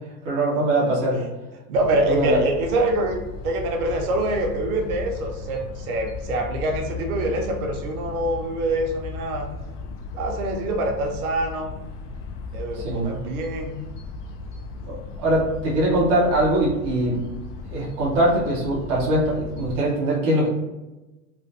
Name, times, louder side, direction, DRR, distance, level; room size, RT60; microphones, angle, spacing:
voice 1, 0.2-1.2 2.1-2.4 12.7-13.1 14.9-17.2 17.7-20.5, right 1 dB, 25° right, -7 dB, 0.4 m, -22 dB
sound 1, 1.7-19.8, left 3 dB, 75° left, 0.5 m, -36 dB
voice 2, 1.7-9.5 10.1-11.8 12.5-13.8, right 1 dB, 65° right, 2 dB, 0.7 m, -25 dB
3.1 x 2.1 x 2.5 m, 1.0 s
supercardioid pair, 165°, 47 cm